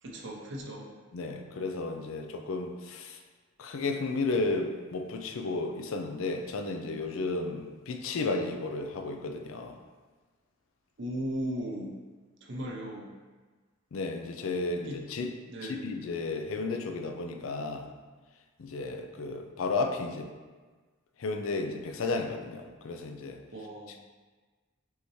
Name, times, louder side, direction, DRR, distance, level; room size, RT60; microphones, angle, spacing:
voice 1, 0.0-0.9 11.0-11.9 12.4-13.1 14.8-15.0 15.5-15.9 23.5-24.0, equal, 65° right, -2 dB, 0.8 m, -37 dB
voice 2, 1.1-3.2 3.6-9.8 13.9-15.3 15.6-17.9 18.6-20.3 21.2-23.4, left 3 dB, 80° left, 4 dB, 0.5 m, -33 dB
5.6 x 2.8 x 3.1 m, 1.4 s
head